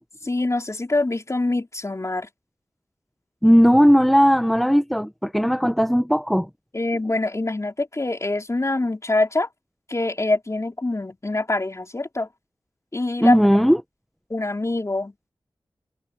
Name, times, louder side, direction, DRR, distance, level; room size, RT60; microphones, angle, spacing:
voice 1, 0.2-2.3 6.7-9.5 9.9-12.3 12.9-13.4 14.3-15.3, left 2 dB, 35° left, 4.6 m, -24 dB
voice 2, 3.4-6.5 13.2-13.8, equal, ahead, 1.2 m, -17 dB
cardioid pair, 45°, 8 cm